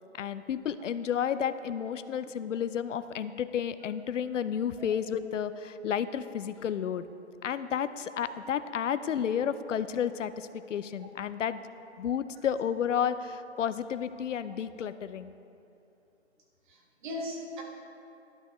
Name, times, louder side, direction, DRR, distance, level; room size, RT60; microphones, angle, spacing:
voice 1, 0.1-7.1 7.4-11.6 12.0-15.3, left 8 dB, 90° left, 13 dB, 0.5 m, -31 dB
voice 2, 16.7-17.6, left 1 dB, 40° right, 0 dB, 1.5 m, -39 dB
12.0 x 6.3 x 3.0 m, 2.7 s
hypercardioid pair, 145°, 36 cm